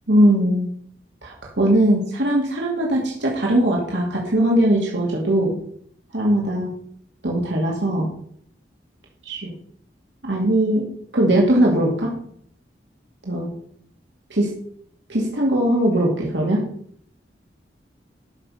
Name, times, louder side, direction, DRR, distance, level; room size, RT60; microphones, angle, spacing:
voice 1, 0.1-0.7 1.2-5.5 6.1-6.7 7.2-8.1 9.3-9.5 10.2-10.9 11.1-12.1 13.2-13.5 14.3-14.5 15.1-16.6, right 1 dB, 90° right, -3 dB, 2.5 m, -20 dB
13.0 x 6.7 x 5.6 m, 0.64 s
head